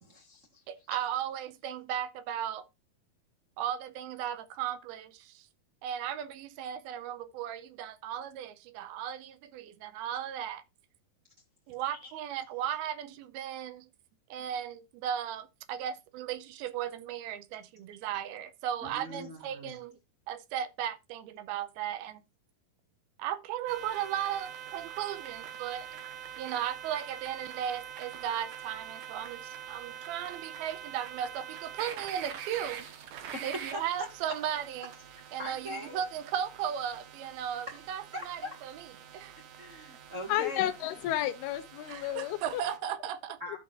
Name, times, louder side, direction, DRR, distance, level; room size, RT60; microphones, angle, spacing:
voice 1, 0.0-0.6 11.9-12.1 18.8-19.8 33.3-34.1 35.4-36.1 38.1-38.6 39.6-40.7 43.4-43.6, left 1 dB, 45° right, 1.0 m, -41 dB
voice 2, 0.7-2.6 3.6-5.5 5.8-10.6 11.7-13.9 14.3-20.0 20.3-22.2 23.2-25.9 26.4-32.9 33.4-34.9 35.3-38.7 39.1-39.4 41.9-43.4, right 10 dB, 85° right, 2.6 m, -36 dB
sound 1, 23.7-42.8, right 9 dB, 65° right, 2.4 m, -45 dB
voice 3, 40.3-42.6, left 13 dB, 85° left, 2.8 m, -31 dB
13.0 x 7.0 x 2.5 m
omnidirectional pair, 4.5 m